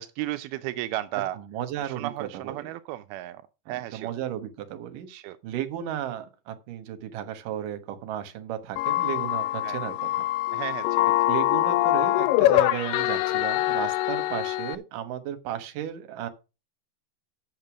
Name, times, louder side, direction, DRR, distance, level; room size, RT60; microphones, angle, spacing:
voice 1, 0.0-1.4 1.8-3.4 3.7-4.1 5.1-5.4 9.6-9.8 10.5-11.1, right 15 dB, 85° right, 2.5 m, -34 dB
voice 2, 1.3-2.7 3.7-5.1 5.4-10.2 11.1-16.3, right 11 dB, 65° right, 2.7 m, -34 dB
sound 1, 8.8-14.8, left 16 dB, 80° left, 2.0 m, -24 dB
8.3 x 6.7 x 6.0 m
omnidirectional pair, 4.3 m